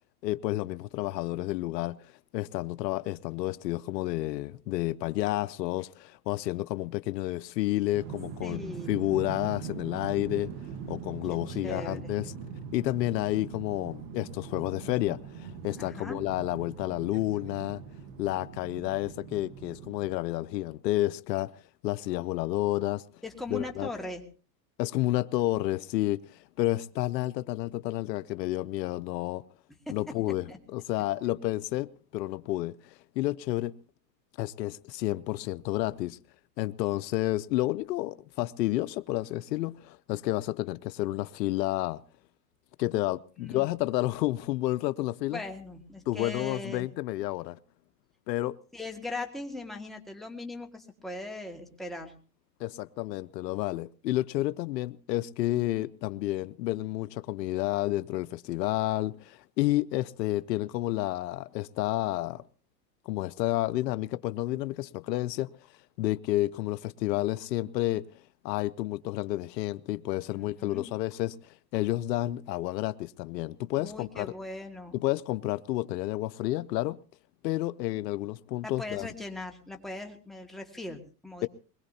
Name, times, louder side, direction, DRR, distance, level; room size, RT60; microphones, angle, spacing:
voice 1, 0.2-2.0 2.3-10.5 10.9-12.3 12.7-17.8 18.2-21.5 21.8-23.0 23.5-23.9 24.8-29.4 29.9-33.8 34.4-36.2 36.6-42.0 42.8-45.4 46.1-47.6 48.3-48.6 52.6-62.4 63.1-65.5 66.0-68.1 68.4-74.3 74.9-77.0 77.4-79.1 81.4-81.5, left 16 dB, 80° left, 0.7 m, -30 dB
sound 1, 7.9-20.1, right 7 dB, 45° right, 1.4 m, -42 dB
voice 2, 8.4-9.0 11.3-12.1 15.8-16.2 23.2-24.2 29.9-30.6 43.4-43.7 45.3-46.9 48.7-52.1 70.6-70.9 73.8-75.0 78.6-81.5, left 2 dB, ahead, 1.9 m, -39 dB
22.5 x 20.5 x 2.8 m
supercardioid pair, 135°, 49 cm